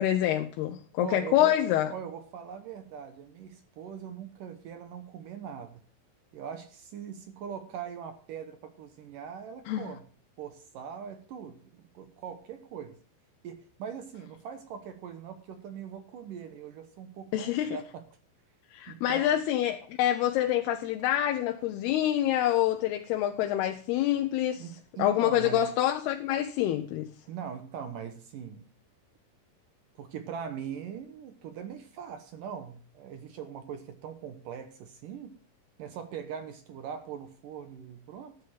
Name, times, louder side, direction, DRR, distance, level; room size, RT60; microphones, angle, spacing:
voice 1, 0.0-1.9 9.7-9.9 17.3-17.8 18.7-24.7 25.0-27.1, left 12 dB, 75° left, 2.8 m, -26 dB
voice 2, 1.0-1.6 1.9-5.8 6.3-10.0 10.4-13.0 13.4-18.0 18.9-19.4 24.6-25.7 27.3-28.7 30.0-35.4 35.8-38.4, right 8 dB, 70° right, 2.2 m, -41 dB
13.0 x 9.6 x 5.8 m
omnidirectional pair, 4.9 m